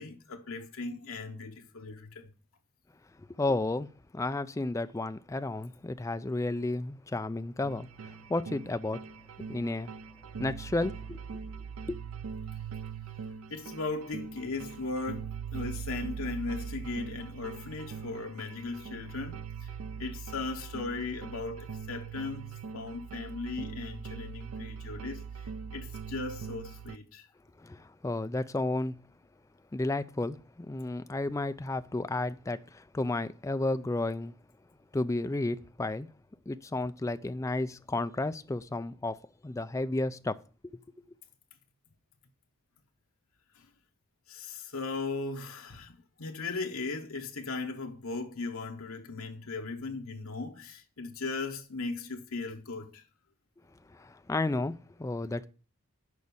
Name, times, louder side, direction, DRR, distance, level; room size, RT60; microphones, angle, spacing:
voice 1, 0.0-2.3 13.5-27.3 43.5-43.7 44.3-53.0, left 3 dB, 80° left, 1.0 m, -38 dB
voice 2, 3.2-9.0 9.5-9.9 10.4-11.2 11.9-12.0 27.6-28.9 29.7-34.3 34.9-36.1 36.5-40.4 53.9-55.5, left 2 dB, 15° left, 0.3 m, -32 dB
sound 1, 7.6-27.0, right 6 dB, 80° right, 0.5 m, -41 dB
6.4 x 5.2 x 6.9 m
head